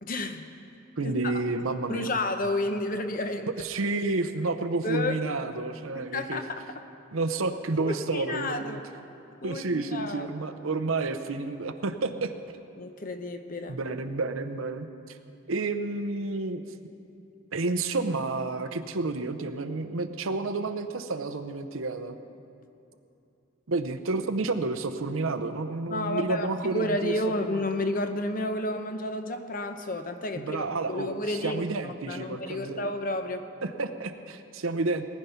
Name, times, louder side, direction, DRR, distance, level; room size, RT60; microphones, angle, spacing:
voice 1, 0.0-0.5 1.0-1.3 1.9-3.5 4.8-5.2 5.9-6.6 7.8-8.8 9.4-10.3 12.8-13.8 25.9-33.5, left 1 dB, 40° left, 7 dB, 0.8 m, -31 dB
voice 2, 1.0-2.1 3.6-6.4 7.1-8.8 9.4-12.6 13.7-15.2 15.5-16.6 17.5-22.2 23.7-27.1 27.5-27.6 30.3-32.9 33.6-35.1, right 3 dB, 85° right, 9 dB, 0.8 m, -30 dB
19.0 x 10.5 x 5.7 m, 2.7 s
head